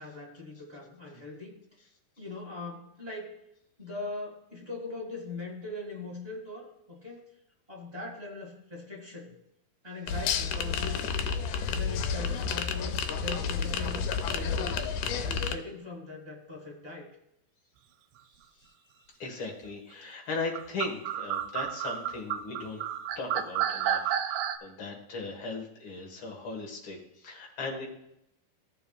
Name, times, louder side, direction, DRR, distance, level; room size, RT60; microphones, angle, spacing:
voice 1, 0.0-1.6 2.2-3.3 3.8-7.3 7.7-9.3 9.8-11.0 11.6-14.8 15.1-17.1, left 3 dB, 20° right, -3 dB, 1.0 m, -41 dB
sound 1, 10.1-15.6, left 6 dB, 80° left, 2.1 m, -30 dB
voice 2, 19.2-22.8 23.2-27.9, left 3 dB, 45° left, 0 dB, 1.9 m, -38 dB
sound 2, 20.5-24.6, right 10 dB, 85° right, 1.7 m, -31 dB
15.0 x 7.0 x 2.3 m, 0.78 s
omnidirectional pair, 3.8 m